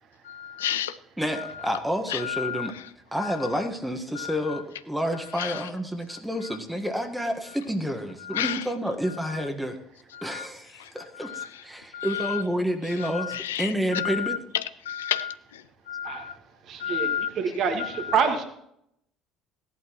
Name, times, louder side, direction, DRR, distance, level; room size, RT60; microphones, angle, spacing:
voice 1, 0.2-1.0 1.3-1.7 2.1-2.9 3.2-3.5 4.2-4.6 5.4-5.7 6.4-6.6 8.2-8.7 9.1-9.5 10.1-10.5 10.7-11.6 11.9-12.4 13.0-16.4 16.8-17.3 17.8-18.2, left 10 dB, 80° left, 0.5 m, -32 dB
voice 2, 1.2-2.7 3.1-9.8 10.2-14.4, equal, 5° right, 1.4 m, -29 dB
voice 3, 16.7-17.1 17.4-18.4, right 6 dB, 50° right, 1.7 m, -26 dB
16.5 x 11.5 x 3.0 m
hypercardioid pair, 60°, 0 cm